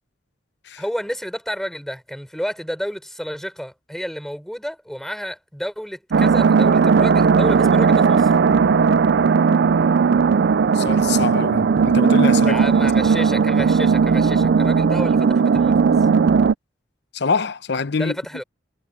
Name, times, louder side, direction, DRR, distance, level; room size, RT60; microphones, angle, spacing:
voice 1, 0.8-8.4 12.5-15.9 18.0-18.4, equal, ahead, 5.0 m, -30 dB
sound 1, 6.1-16.5, right 5 dB, 60° right, 0.4 m, -16 dB
voice 2, 10.7-12.6 17.1-18.2, left 4 dB, 65° left, 0.8 m, -24 dB
head